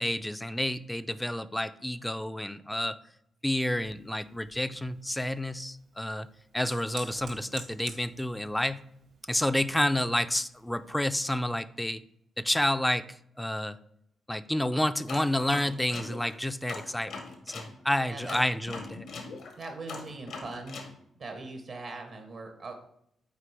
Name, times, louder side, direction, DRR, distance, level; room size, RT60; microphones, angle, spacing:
voice 1, 0.0-3.0 3.4-6.3 6.5-8.8 9.3-12.0 12.4-13.0 13.4-13.8 14.3-19.1, left 1 dB, 10° left, 13 dB, 0.4 m, -29 dB
Fire, 3.7-11.0, right 4 dB, 80° right, 2.2 m, -51 dB
sound 1, 15.1-17.7 18.3-20.9, left 4 dB, 75° left, 1.1 m, -41 dB
voice 2, 18.0-18.4 19.6-20.8 21.2-22.7, right 3 dB, 65° right, 4 dB, 1.0 m, -40 dB
6.8 x 4.4 x 3.4 m, 0.75 s
supercardioid pair, 50°, 0 cm